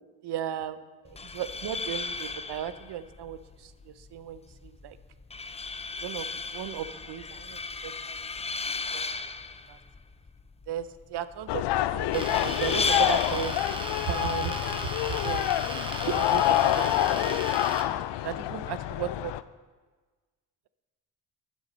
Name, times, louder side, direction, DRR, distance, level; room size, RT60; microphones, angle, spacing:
voice 1, 0.2-0.8 1.3-5.0 6.0-8.3 8.7-9.1 9.7-9.8 10.7-17.4 18.2-19.3, right 10 dB, 60° right, 14 dB, 0.7 m, -36 dB
sound 1, 1.0-16.0, left 4 dB, 15° left, 0.5 m, -36 dB
sound 2, 11.5-19.4, left 14 dB, 65° left, 0.5 m, -27 dB
sound 3, 12.1-17.8, right 1 dB, 10° right, 1.2 m, -36 dB
9.4 x 7.4 x 5.4 m, 1.3 s
supercardioid pair, 55°, 46 cm